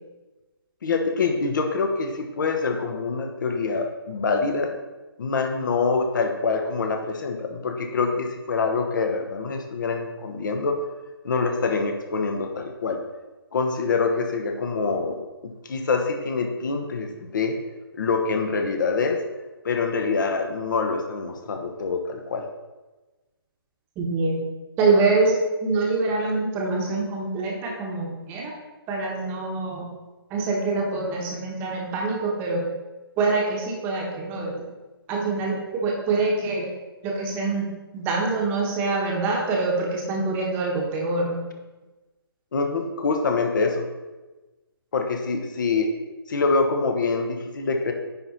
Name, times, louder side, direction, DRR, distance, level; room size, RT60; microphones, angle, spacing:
voice 1, 0.8-4.7 5.2-10.7 11.2-13.0 13.5-15.2 15.6-17.1 17.3-17.5 18.0-19.2 19.6-22.4 42.5-43.9 44.9-45.9 46.3-47.9, left 4 dB, 50° left, 4 dB, 1.1 m, -25 dB
voice 2, 24.0-24.4 24.8-28.5 28.9-29.8 30.3-32.7 33.2-34.6 35.1-36.7 37.0-41.4, right 3 dB, 15° right, -1 dB, 1.1 m, -25 dB
9.7 x 4.3 x 4.1 m, 1.2 s
figure-of-eight pair, 145°, 13 cm